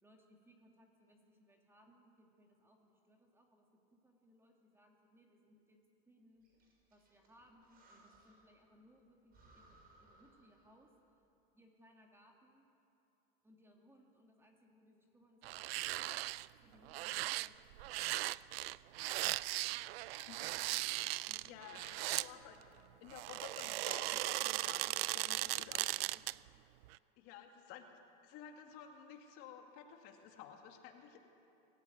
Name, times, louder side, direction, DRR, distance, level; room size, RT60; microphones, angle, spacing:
voice 1, 0.0-6.5 6.9-10.9 11.5-12.7 13.4-16.2 16.6-18.4 21.2-22.7, equal, 10° right, 1 dB, 2.5 m, -67 dB
Breathing, 6.4-8.6 8.9-9.0 9.3-11.0, right 2 dB, 30° right, 5.7 m, -66 dB
sound 1, 15.4-16.5 16.9-22.3 23.1-26.5 26.8-27.0, right 18 dB, 80° right, 0.5 m, -38 dB
voice 2, 21.4-22.6 23.0-26.0 27.2-27.9 28.2-31.2, left 9 dB, 50° left, 4 dB, 2.2 m, -53 dB
23.0 x 15.0 x 9.4 m, 2.9 s
supercardioid pair, 140°, 30 cm